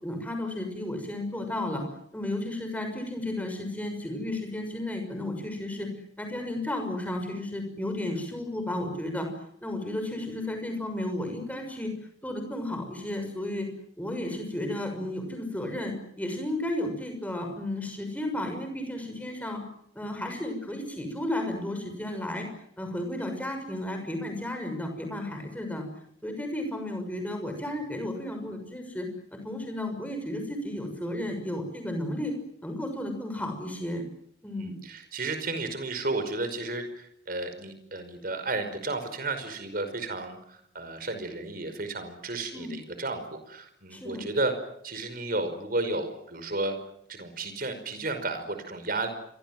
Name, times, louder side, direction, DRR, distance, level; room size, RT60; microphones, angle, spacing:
voice 1, 0.0-1.8 2.1-5.9 6.2-9.3 9.6-11.9 12.2-13.7 14.0-19.6 19.9-22.5 22.8-25.8 26.2-29.1 29.3-32.3 32.6-34.0 34.4-34.7 42.5-42.7 43.9-44.2, left 1 dB, 10° left, 5 dB, 6.3 m, -33 dB
voice 2, 34.6-44.5 44.8-46.8 47.1-49.1, right 2 dB, 45° right, 9 dB, 5.2 m, -33 dB
29.0 x 24.0 x 7.8 m, 0.72 s
head